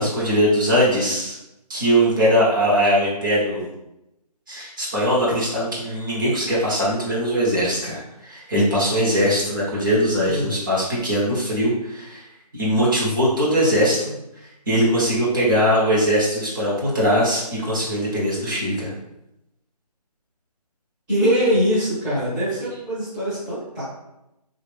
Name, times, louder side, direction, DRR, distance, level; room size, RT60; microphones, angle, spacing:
voice 1, 0.0-1.4 1.7-3.7 4.5-12.2 12.5-14.1 14.7-18.9, equal, 30° right, -6 dB, 0.9 m, -21 dB
voice 2, 21.1-23.8, equal, 5° right, -16 dB, 0.8 m, -22 dB
3.0 x 2.4 x 3.3 m, 0.90 s
figure-of-eight pair, 160°, 21 cm